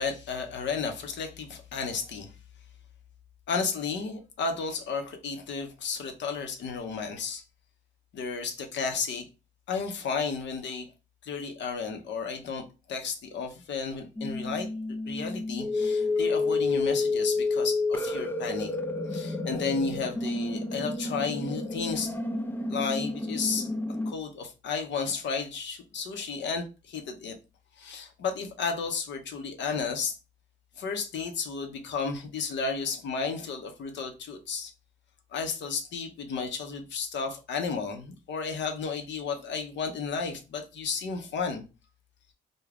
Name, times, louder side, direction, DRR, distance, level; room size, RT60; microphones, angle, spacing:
voice 1, 0.0-2.3 3.5-7.4 8.1-9.3 9.7-10.9 11.2-14.7 15.1-18.8 19.1-22.1 22.7-23.7 24.1-27.3 27.8-30.2 30.8-34.7 35.3-41.6, left 5 dB, 65° left, 0.7 m, -33 dB
sound 1, 14.2-24.1, left 3 dB, 10° left, 0.3 m, -30 dB
2.4 x 2.1 x 3.3 m
cardioid pair, 90°, 20 cm